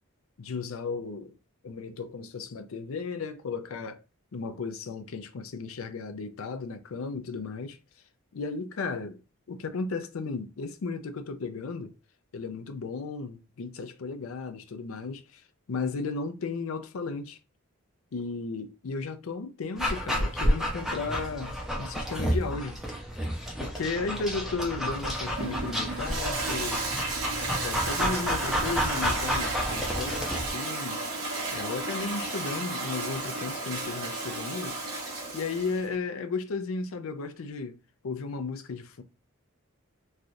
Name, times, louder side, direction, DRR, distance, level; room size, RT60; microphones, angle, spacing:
voice 1, 0.4-1.4 1.6-4.0 4.3-7.8 8.3-9.2 9.5-11.9 12.3-15.4 15.7-17.4 18.1-22.8 23.6-26.9 27.6-31.0 31.5-34.8 35.3-37.8 38.0-39.0, left 4 dB, 75° left, 0.5 m, -34 dB
Dog, 19.8-30.5, equal, ahead, 0.6 m, -30 dB
Toilet flush, 24.8-35.9, right 2 dB, 90° right, 1.2 m, -33 dB
3.2 x 2.4 x 2.6 m
head